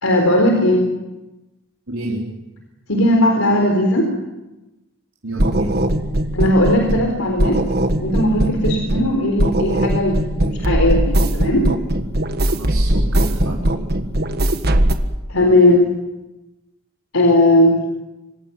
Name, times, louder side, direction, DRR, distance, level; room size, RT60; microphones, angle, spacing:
voice 1, 0.0-0.8 2.9-4.1 6.3-7.6 8.0-11.7 15.3-15.9 17.1-17.8, left 1 dB, 85° left, 2 dB, 4.0 m, -17 dB
voice 2, 1.9-2.2 5.2-5.7 12.5-13.6, right 1 dB, 75° right, -3 dB, 4.3 m, -27 dB
sound 1, 5.4-7.1 7.4-9.1 9.4-14.9, right 1 dB, 45° right, 1.6 m, -19 dB
26.0 x 16.0 x 9.2 m, 1.0 s
head